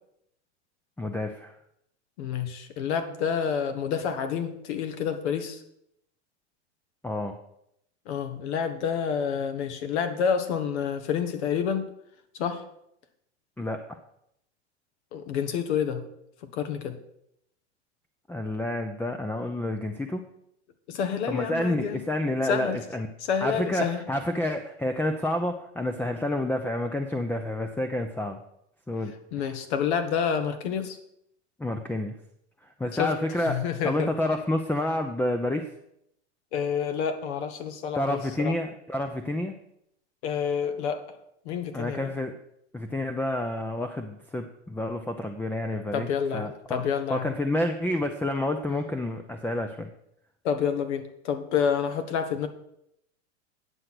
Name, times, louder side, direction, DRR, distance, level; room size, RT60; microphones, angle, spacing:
voice 1, 1.0-1.5 7.0-7.4 13.6-14.0 18.3-20.2 21.3-23.1 23.4-28.4 28.9-29.6 31.6-32.1 32.6-33.5 33.8-35.7 37.9-39.5 41.7-42.4 42.7-46.8 47.1-49.9, left 1 dB, 5° left, 6 dB, 0.6 m, -29 dB
voice 2, 2.2-5.6 8.1-11.9 12.3-12.6 15.1-16.0 16.5-17.0 20.9-22.0 22.5-22.8 23.3-24.0 29.3-31.0 33.0-33.1 33.4-34.1 36.5-38.5 40.2-41.0 41.4-42.1 45.9-47.3 50.4-52.5, left 7 dB, 65° left, 8 dB, 1.4 m, -28 dB
9.7 x 6.5 x 6.0 m, 0.76 s
hypercardioid pair, 105°, 35 cm